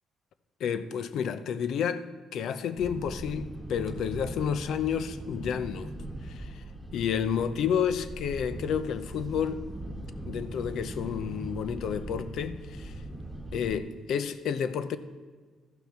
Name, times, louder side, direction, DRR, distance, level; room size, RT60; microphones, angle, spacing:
voice 1, 0.6-2.0 2.3-5.9 6.2-6.6 6.9-9.6 10.3-13.0 13.5-15.0, left 8 dB, 75° left, 0.6 m, -30 dB
sound 1, 2.8-13.8, right 1 dB, 5° right, 1.5 m, -40 dB
13.5 x 5.8 x 4.4 m
cardioid pair, 90°, 0 cm